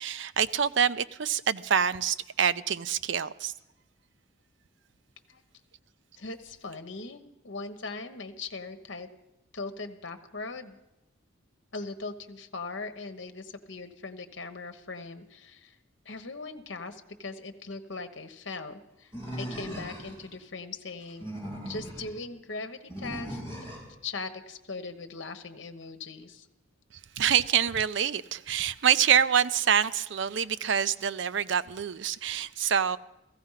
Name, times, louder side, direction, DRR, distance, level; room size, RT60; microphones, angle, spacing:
voice 1, 0.0-3.5 27.2-33.0, right 8 dB, 60° right, 0.5 m, -26 dB
voice 2, 6.2-9.1 9.5-10.8 11.7-15.8 16.0-19.1 19.4-21.3 21.6-23.4 24.0-26.5, left 3 dB, 60° left, 1.2 m, -40 dB
Animal, 19.1-20.3 21.0-22.1 22.9-23.9, equal, 25° right, 5.2 m, -38 dB
15.5 x 15.0 x 5.7 m
head